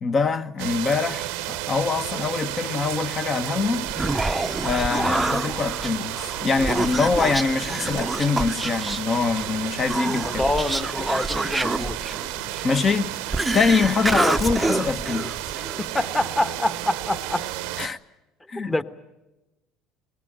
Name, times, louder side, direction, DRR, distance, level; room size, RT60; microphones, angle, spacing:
voice 1, 0.0-3.9 4.6-10.4 12.6-13.1 13.5-15.3 17.8-18.0 18.5-18.8, left 4 dB, 40° left, 1.2 m, -24 dB
sound 1, 0.6-17.9, right 15 dB, 75° right, 0.8 m, -32 dB
Human voice, 3.7-15.9, right 2 dB, 10° right, 0.7 m, -28 dB
voice 2, 10.2-12.1 12.4-12.5 15.8-17.5 18.6-18.8, left 1 dB, 15° left, 1.3 m, -26 dB
22.5 x 19.0 x 9.3 m
hypercardioid pair, 75°, 0 cm